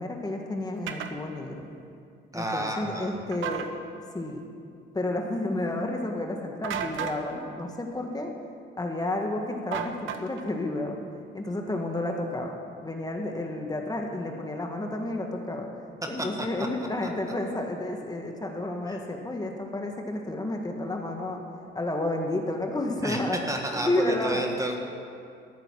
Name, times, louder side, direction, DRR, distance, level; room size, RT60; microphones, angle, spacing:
voice 1, 0.0-1.6 2.3-3.7 4.1-4.4 4.9-8.3 8.8-11.0 11.3-15.7 16.1-21.4 21.7-23.4 23.9-24.5, left 1 dB, 20° left, 2 dB, 1.7 m, -31 dB
sound 1, 0.9-1.1 3.3-3.7 6.6-7.2 9.7-10.5, right 8 dB, 80° right, 1.0 m, -33 dB
voice 2, 2.3-3.2 16.2-16.5 23.0-23.2 23.5-24.8, right 1 dB, 15° right, 2 dB, 1.7 m, -31 dB
14.0 x 6.8 x 9.8 m, 2.4 s
cardioid pair, 90°, 20 cm